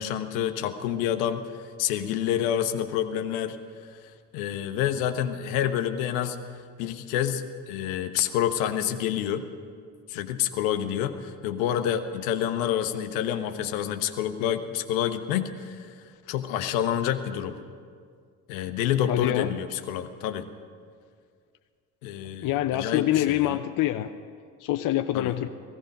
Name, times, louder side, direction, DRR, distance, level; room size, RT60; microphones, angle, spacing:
voice 1, 0.0-1.4 1.8-3.6 4.3-6.4 6.8-9.4 10.1-15.9 16.3-17.6 18.5-20.5 22.0-23.6 25.1-25.3, left 10 dB, 70° left, 8 dB, 1.0 m, -28 dB
voice 2, 19.1-19.5 22.4-24.1 24.6-25.5, left 13 dB, 50° left, 9 dB, 0.7 m, -25 dB
16.5 x 16.0 x 5.3 m, 2.1 s
hypercardioid pair, 60°, 43 cm